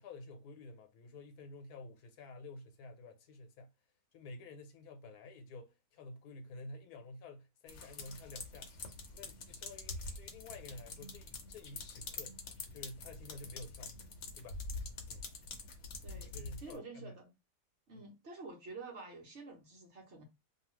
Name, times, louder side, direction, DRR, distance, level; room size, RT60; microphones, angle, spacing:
voice 1, 0.0-3.7 4.1-8.7 9.1-12.4 12.7-14.0 14.3-14.6 15.1-15.3 16.1-17.2 17.9-18.1, left 2 dB, 85° left, 1.2 m, -51 dB
sound 1, 7.7-16.8, left 3 dB, 60° left, 0.9 m, -46 dB
voice 2, 16.0-16.3 16.6-17.3 17.9-20.2, right 3 dB, 55° right, 1.1 m, -49 dB
2.8 x 2.4 x 3.0 m
omnidirectional pair, 1.6 m